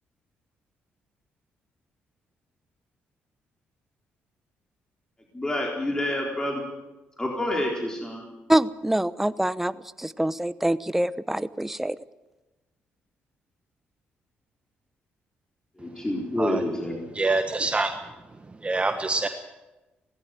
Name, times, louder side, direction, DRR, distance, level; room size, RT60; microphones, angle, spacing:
voice 1, 5.3-6.7 7.2-8.3 15.8-17.0, left 1 dB, 15° left, -1 dB, 4.2 m, -28 dB
voice 2, 8.5-12.0, right 1 dB, 5° right, 15 dB, 0.9 m, -25 dB
voice 3, 17.1-18.0 18.4-19.3, right 3 dB, 25° right, 6 dB, 1.5 m, -26 dB
18.0 x 16.0 x 9.2 m, 1.1 s
cardioid pair, 75°, 4 cm